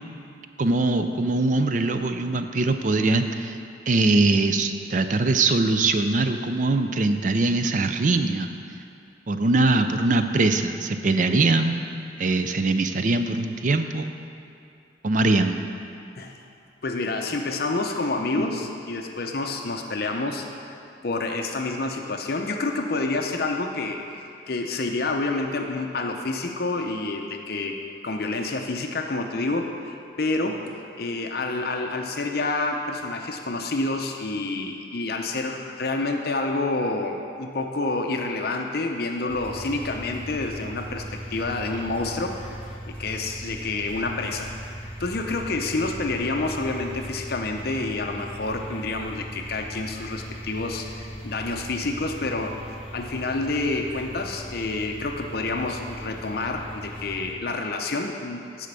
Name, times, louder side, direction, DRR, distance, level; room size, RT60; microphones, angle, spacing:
voice 1, 0.6-3.6 3.9-8.5 9.3-11.8 12.2-14.1 15.0-15.6, right 2 dB, 45° right, 8 dB, 0.4 m, -22 dB
voice 2, 16.8-20.8 21.0-27.8 28.0-41.0 41.3-42.4 42.9-44.5 45.0-52.6 52.9-58.7, left 3 dB, 55° left, 3 dB, 0.6 m, -28 dB
sound 1, 39.3-57.3, equal, 30° left, 0.9 m, -39 dB
10.0 x 5.0 x 6.7 m, 2.6 s
head